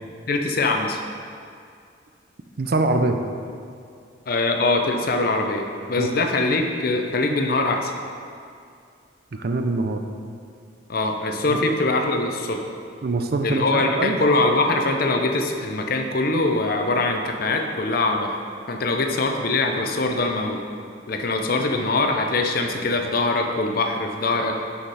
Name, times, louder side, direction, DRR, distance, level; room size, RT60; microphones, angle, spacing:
voice 1, 0.3-1.0 4.3-7.9 10.9-12.6 13.4-18.4 18.7-20.6 21.1-24.6, left 2 dB, 50° left, 4 dB, 0.6 m, -23 dB
voice 2, 2.6-3.2 6.0-6.3 9.3-10.0 11.5-11.6 13.0-14.2, right 2 dB, 50° right, 6 dB, 0.5 m, -24 dB
6.6 x 5.7 x 4.8 m, 2.3 s
head